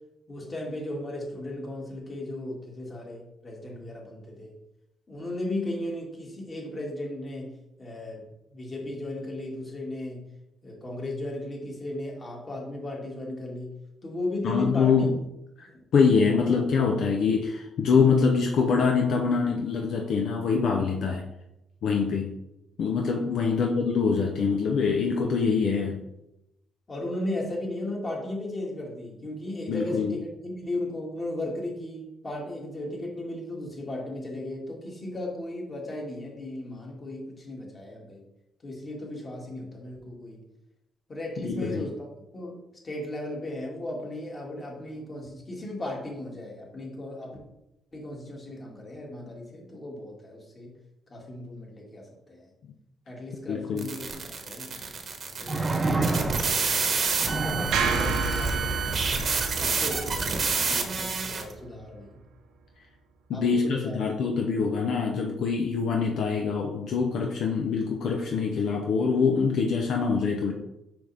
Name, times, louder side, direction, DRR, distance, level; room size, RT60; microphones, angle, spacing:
voice 1, 0.3-4.5 5.1-8.2 8.5-10.3 10.6-13.8 14.0-15.1 15.7-15.8 16.2-16.5 23.3-23.5 26.9-38.2 38.6-40.4 41.1-42.6 42.8-47.4 47.9-50.8 51.1-52.5 53.1-54.8 55.3-56.7 57.2-59.0 59.6-62.2 63.3-64.0, left 1 dB, 35° left, -2 dB, 2.1 m, -36 dB
voice 2, 14.4-15.1 15.6-21.2 21.8-22.3 22.8-26.0 29.7-30.1 41.4-41.9 53.5-53.9 63.3-70.5, left 5 dB, 70° left, 2 dB, 0.7 m, -24 dB
sound 1, 53.8-61.5, right 4 dB, 50° right, 1.1 m, -28 dB
sound 2, 54.1-54.2 55.5-56.7 57.2-57.9 59.8-59.9, right 3 dB, 25° right, 0.8 m, -28 dB
sound 3, 57.7-62.0, right 4 dB, 90° right, 0.9 m, -31 dB
6.0 x 5.2 x 3.4 m, 0.88 s
cardioid pair, 90°, 0 cm